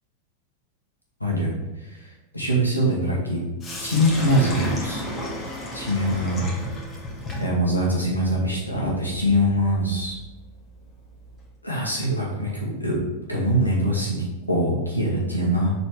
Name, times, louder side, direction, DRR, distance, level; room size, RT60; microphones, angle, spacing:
voice 1, 1.2-1.5 1.8-2.0 2.3-3.4 3.8-5.0 5.7-6.5 7.4-10.2 11.6-13.0 13.3-15.7, equal, 85° left, -4 dB, 2.0 m, -23 dB
Sink (filling or washing), 3.6-11.5, left 1 dB, 25° left, 1.8 m, -35 dB
6.4 x 4.3 x 4.9 m, 1.1 s
figure-of-eight pair, 90°, 0 cm